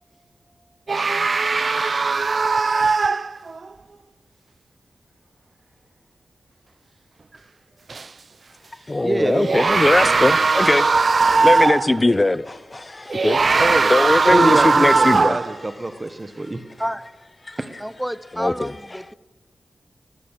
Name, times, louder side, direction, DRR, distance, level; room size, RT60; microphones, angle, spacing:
sound 1, 0.9-3.7 7.9-8.0 9.3-12.0 13.1-15.6, right 4 dB, 55° right, 0.6 m, -19 dB
voice 1, 1.8-2.3 9.0-10.2 13.6-13.9 14.3-16.6 17.6-17.7, right 2 dB, 30° right, 1.3 m, -26 dB
voice 2, 8.9-15.4 17.5-17.6 18.3-18.7, left 2 dB, 25° left, 0.6 m, -21 dB
voice 3, 17.8-19.1, equal, 5° right, 0.8 m, -29 dB
19.5 x 15.5 x 9.2 m
wide cardioid pair, 85°, 0 cm